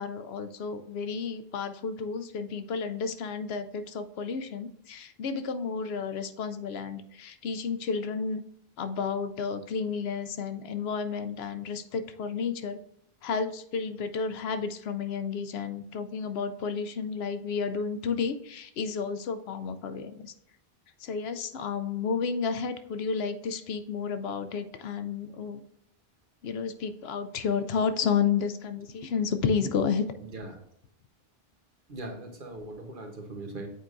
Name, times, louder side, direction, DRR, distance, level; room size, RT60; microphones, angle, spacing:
voice 1, 0.0-8.4 8.8-12.8 13.2-20.3 21.0-25.6 26.4-30.0, left 5 dB, 80° left, 9 dB, 0.8 m, -31 dB
voice 2, 30.2-30.6 31.9-33.7, right 2 dB, 55° right, 3 dB, 1.2 m, -40 dB
8.2 x 4.6 x 2.5 m, 0.75 s
omnidirectional pair, 1.0 m